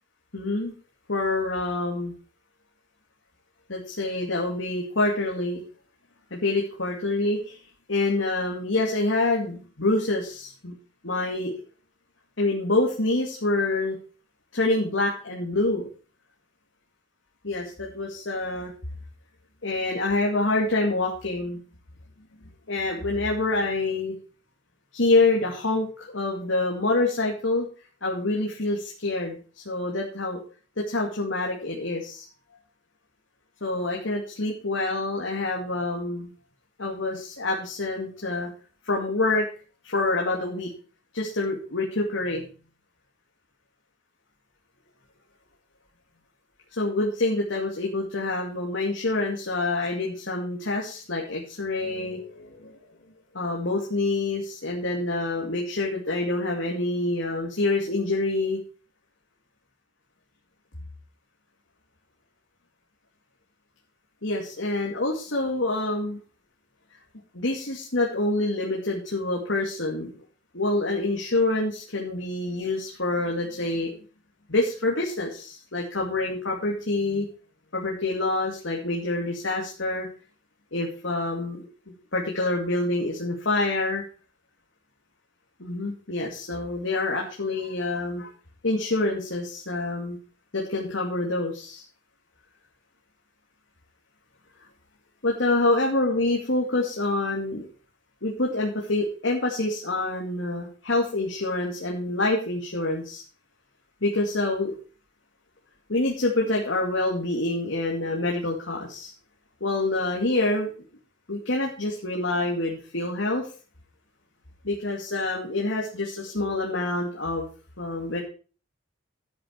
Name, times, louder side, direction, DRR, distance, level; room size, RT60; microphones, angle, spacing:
voice 1, 0.3-0.7 1.1-2.1 3.7-5.6 6.3-7.6 7.9-10.7 11.0-11.6 12.4-14.0 14.5-15.9 17.4-18.7 19.6-21.6 22.7-24.1 24.9-27.7 28.0-29.4 29.7-30.4 30.8-32.2 33.6-36.3 36.8-38.5 38.8-39.5 39.8-40.7 41.1-42.4 46.7-52.7 53.3-58.6 64.2-66.2 67.3-70.1 70.5-73.9 74.5-77.3 77.7-80.1 80.7-81.6 82.1-84.0 85.6-88.3 88.6-90.2 90.5-91.8 95.2-97.7 98.2-103.2 104.0-104.8 105.9-109.1 109.6-110.7 111.3-113.5 114.6-117.5 117.8-118.2, left 2 dB, 80° left, -1 dB, 2.5 m, -26 dB
12.0 x 9.2 x 4.6 m, 0.37 s
head